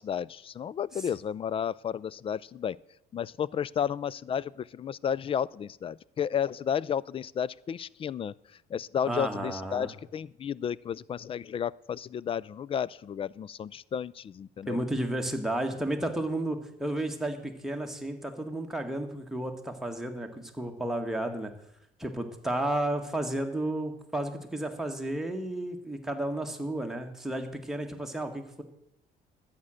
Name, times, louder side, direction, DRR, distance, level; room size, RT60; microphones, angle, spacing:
voice 1, 0.0-2.8 3.1-8.3 8.7-14.8, left 8 dB, 35° left, 23 dB, 0.3 m, -32 dB
voice 2, 9.0-9.9 14.6-21.5 22.0-28.6, right 1 dB, ahead, 3 dB, 1.7 m, -32 dB
12.0 x 8.7 x 6.4 m, 0.79 s
cardioid pair, 110°, 17 cm